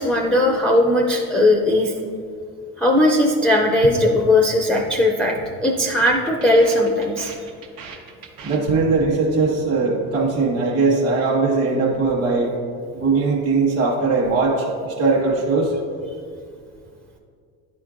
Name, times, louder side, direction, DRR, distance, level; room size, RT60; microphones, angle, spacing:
voice 1, 0.0-1.9 2.8-7.3, left 1 dB, 5° left, 1 dB, 0.3 m, -18 dB
sound 1, 3.8-4.9 5.2-5.5 5.8-9.2 9.4-9.8 10.0-10.4, right 5 dB, 80° right, 1.0 m, -34 dB
voice 2, 8.4-12.5 12.9-15.7, right 3 dB, 40° right, -2 dB, 1.1 m, -20 dB
10.0 x 4.5 x 2.5 m, 2.3 s
supercardioid pair, 90°, 41 cm